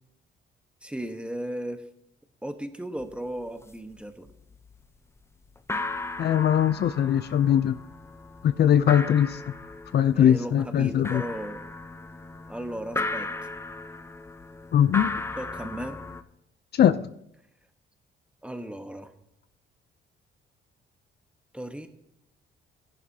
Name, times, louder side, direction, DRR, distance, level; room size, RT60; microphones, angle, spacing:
voice 1, 0.8-1.8 2.4-4.3 10.1-11.6 12.5-13.3 15.3-16.0 18.4-19.1 21.5-21.9, right 1 dB, 5° right, 7 dB, 1.2 m, -35 dB
sound 1, 3.0-3.2 3.4-3.9 4.3-4.9 5.2-5.3 5.6-16.2, left 2 dB, 15° left, 0.7 m, -36 dB
voice 2, 6.2-7.8 8.4-9.4 9.9-11.2 14.7-15.2 16.8-17.1, left 9 dB, 55° left, 13 dB, 0.5 m, -21 dB
16.5 x 11.0 x 2.8 m, 0.80 s
cardioid pair, 90°, 20 cm